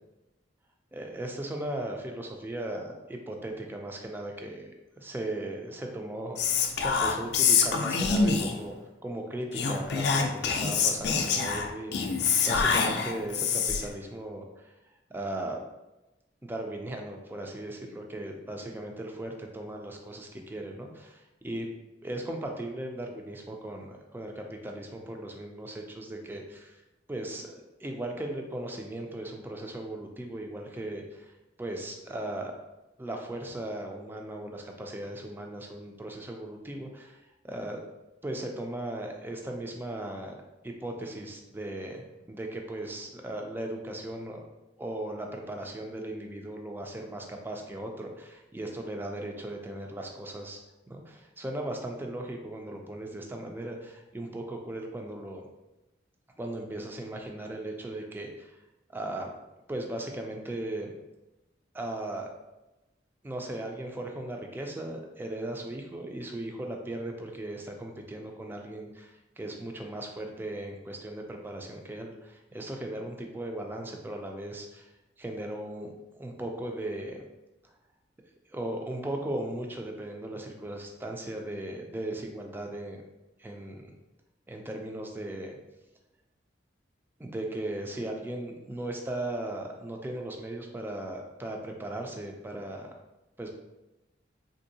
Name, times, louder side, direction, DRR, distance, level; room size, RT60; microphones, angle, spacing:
voice 1, 0.9-4.7 5.0-8.7 9.0-14.7 15.1-15.6 16.4-21.7 22.0-26.8 27.1-31.3 31.6-32.5 33.0-37.8 38.2-40.3 40.6-42.0 42.3-44.4 44.8-50.6 50.9-55.4 56.4-58.6 58.9-59.3 59.7-60.9 61.7-62.3 63.2-74.9 75.2-77.2 78.5-83.0 83.4-83.8 84.5-85.5 87.2-92.9 93.4-93.5, right 1 dB, 10° right, 2 dB, 0.3 m, -37 dB
Whispering, 6.4-8.7 9.5-13.9, left 5 dB, 60° left, 0.4 m, -26 dB
3.5 x 2.6 x 2.7 m, 1.0 s
head